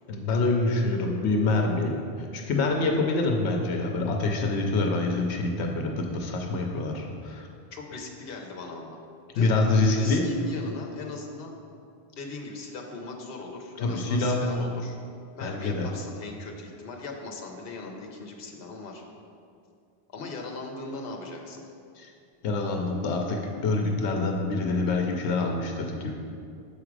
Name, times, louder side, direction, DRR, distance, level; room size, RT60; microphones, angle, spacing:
voice 1, 0.1-7.5 9.4-10.3 13.8-14.4 15.4-15.9 22.0-22.1 22.4-26.1, left 3 dB, 90° left, 2 dB, 1.0 m, -26 dB
voice 2, 7.7-9.0 9.3-11.6 12.1-15.0 15.3-19.0 20.1-21.7, left 3 dB, 65° left, 1 dB, 1.0 m, -39 dB
6.9 x 4.9 x 4.7 m, 2.4 s
omnidirectional pair, 1.1 m